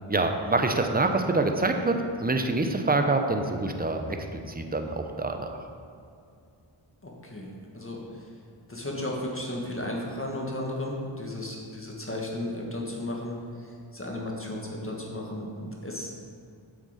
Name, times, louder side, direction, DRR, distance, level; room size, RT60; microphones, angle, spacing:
voice 1, 0.1-5.6, right 2 dB, 20° right, 5 dB, 0.7 m, -26 dB
voice 2, 7.0-8.3 8.7-16.1, left 1 dB, 25° left, -2 dB, 1.6 m, -34 dB
7.9 x 6.6 x 5.1 m, 2.4 s
wide cardioid pair, 55°, 49 cm